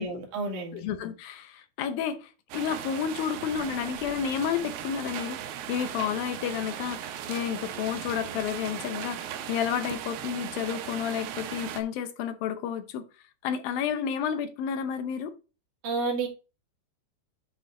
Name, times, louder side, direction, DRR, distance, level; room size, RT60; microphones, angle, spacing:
voice 1, 0.0-0.9 15.8-16.3, right 3 dB, 55° right, 3.2 m, -30 dB
voice 2, 0.7-5.4 5.7-13.0 13.4-15.3, left 8 dB, 75° left, 2.3 m, -31 dB
sound 1, 2.5-11.8, right 10 dB, 80° right, 2.8 m, -38 dB
11.5 x 4.0 x 3.7 m
omnidirectional pair, 4.8 m